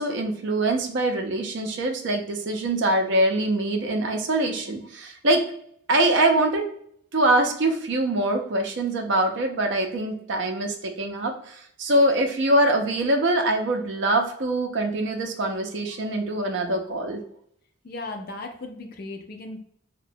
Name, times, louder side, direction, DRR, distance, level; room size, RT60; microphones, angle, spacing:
voice 1, 0.0-5.4 5.9-6.6 7.1-17.2, right 1 dB, 55° right, 3 dB, 0.5 m, -23 dB
voice 2, 17.8-19.6, left 2 dB, 45° left, 4 dB, 0.4 m, -36 dB
2.8 x 2.1 x 2.6 m, 0.67 s
head